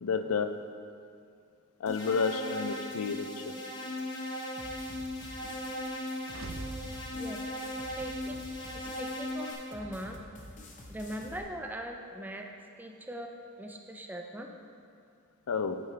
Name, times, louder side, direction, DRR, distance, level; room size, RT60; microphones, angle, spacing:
voice 1, 0.0-0.6 1.8-3.6 15.5-15.8, left 5 dB, 80° left, 9 dB, 0.4 m, -31 dB
sound 1, 1.9-9.5, left 1 dB, 55° left, 1.6 m, -38 dB
sound 2, 4.6-11.4, left 1 dB, 35° left, 0.9 m, -49 dB
sound 3, 6.3-8.4, right 3 dB, 70° right, 0.5 m, -45 dB
voice 2, 8.0-8.4 8.7-10.2 10.9-12.4 12.8-14.5, equal, 10° right, 2 dB, 0.5 m, -40 dB
9.0 x 8.5 x 3.3 m, 2.4 s
head